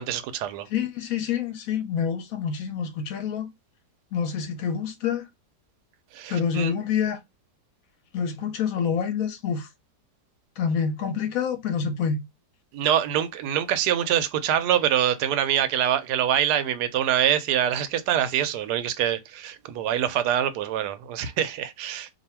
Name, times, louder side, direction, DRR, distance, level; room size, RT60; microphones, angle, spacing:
voice 1, 0.0-0.7 6.1-6.7 12.7-22.1, right 10 dB, 70° right, 1.0 m, -25 dB
voice 2, 0.7-3.5 4.1-5.3 6.3-7.2 8.1-9.7 10.6-12.2, left 7 dB, 65° left, 0.9 m, -27 dB
2.7 x 2.6 x 4.3 m
omnidirectional pair, 2.0 m